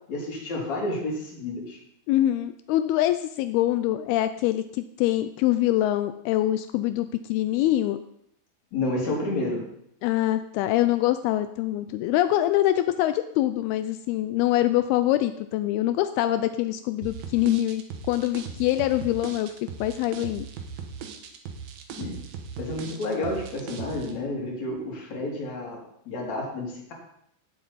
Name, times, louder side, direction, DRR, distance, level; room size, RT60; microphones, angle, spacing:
voice 1, 0.1-1.8 8.7-9.7 22.0-22.2 22.6-26.9, left 2 dB, 45° left, -2 dB, 3.7 m, -30 dB
voice 2, 2.1-8.0 10.0-17.8 18.1-19.5 19.8-20.5, left 14 dB, 90° left, 10 dB, 2.2 m, -24 dB
sound 1, 17.0-24.1, right 6 dB, 65° right, 2.7 m, -38 dB
17.5 x 7.6 x 4.1 m, 0.73 s
omnidirectional pair, 5.0 m